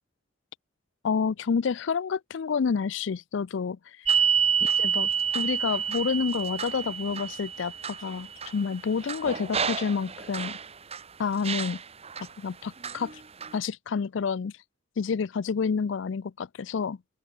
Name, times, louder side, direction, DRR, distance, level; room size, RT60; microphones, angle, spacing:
voice 1, 1.0-4.1 4.6-5.1 5.3-10.6 11.2-11.8 12.4-13.1 13.5-14.5 15.0-17.0, left 5 dB, 65° left, 0.4 m, -29 dB
sound 1, 4.1-11.0 11.4-12.3 12.8-13.6, right 7 dB, 30° right, 1.4 m, -29 dB
open air
head